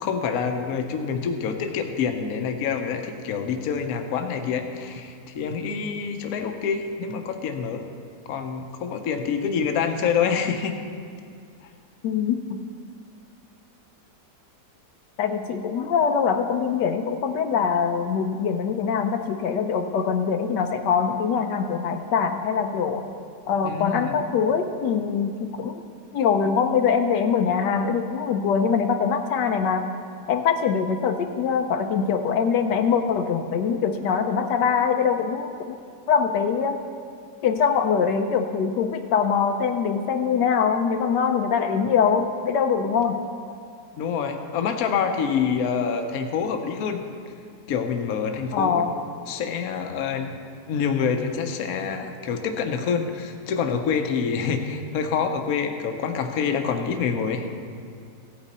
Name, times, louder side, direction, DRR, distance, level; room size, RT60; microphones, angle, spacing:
voice 1, 0.0-7.8 8.3-10.8 23.6-24.2 44.0-47.0 47.7-48.8 49.3-50.3 50.7-57.5, left 6 dB, 65° left, 5 dB, 1.1 m, -26 dB
voice 2, 12.0-12.6 15.2-23.1 23.5-25.8 26.1-29.8 30.3-35.8 36.1-36.8 37.4-43.2 48.5-48.9, left 6 dB, 80° left, 6 dB, 1.3 m, -23 dB
15.0 x 9.0 x 4.2 m, 2.3 s
omnidirectional pair, 1.8 m